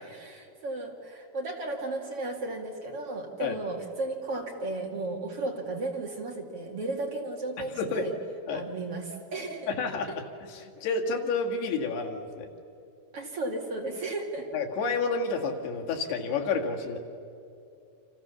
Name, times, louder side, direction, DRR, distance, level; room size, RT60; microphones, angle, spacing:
voice 1, 0.0-8.1 8.5-9.7 13.1-14.5, right 2 dB, 40° right, 1 dB, 2.7 m, -34 dB
voice 2, 7.6-8.1 8.5-8.6 9.8-12.5 14.5-17.0, left 4 dB, 90° left, 1 dB, 4.2 m, -30 dB
29.0 x 27.0 x 7.1 m, 2.6 s
omnidirectional pair, 4.5 m